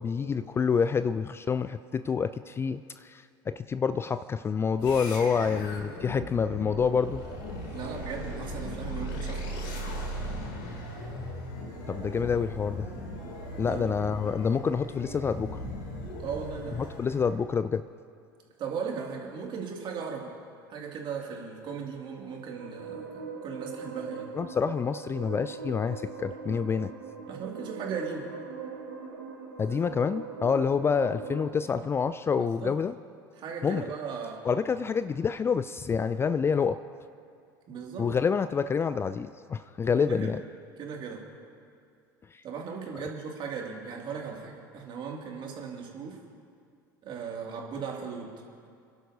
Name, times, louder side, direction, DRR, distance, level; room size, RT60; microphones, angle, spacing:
voice 1, 0.0-7.2 11.9-12.9 13.6-15.5 17.0-17.8 24.4-26.9 29.6-32.9 33.6-33.8 34.4-36.8 38.0-40.4 42.3-42.4, left 6 dB, 20° left, 12 dB, 0.3 m, -27 dB
sound 1, 4.8-17.4, equal, 65° left, 2.7 m, -38 dB
voice 2, 7.7-9.5 13.6-13.9 16.2-16.8 18.6-20.3 20.7-24.3 27.3-28.3 32.3-32.7 33.4-34.4 37.7-38.1 40.0-40.3 40.8-41.2 42.4-46.2 47.0-48.3, right 6 dB, 45° right, 0 dB, 2.3 m, -37 dB
sound 2, 22.2-31.5, right 5 dB, 85° right, 1.9 m, -41 dB
28.5 x 11.5 x 2.7 m, 2.3 s
hypercardioid pair, 75°, 11 cm